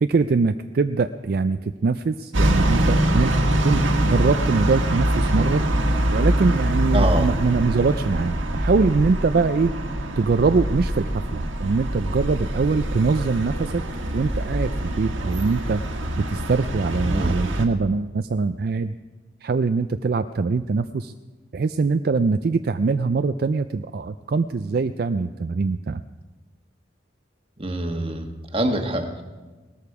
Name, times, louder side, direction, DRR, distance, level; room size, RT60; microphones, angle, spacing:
voice 1, 0.0-5.6 6.1-9.7 10.2-11.0 11.3-13.8 14.1-15.8 16.2-18.9 19.4-21.1 21.5-26.0, right 4 dB, 50° right, 10 dB, 0.4 m, -23 dB
sound 1, 2.3-17.7, right 1 dB, 85° right, 1.7 m, -24 dB
voice 2, 6.9-7.3 17.1-17.3 27.6-29.2, right 1 dB, 30° right, 5 dB, 1.3 m, -25 dB
18.5 x 13.5 x 4.8 m, 1.3 s
head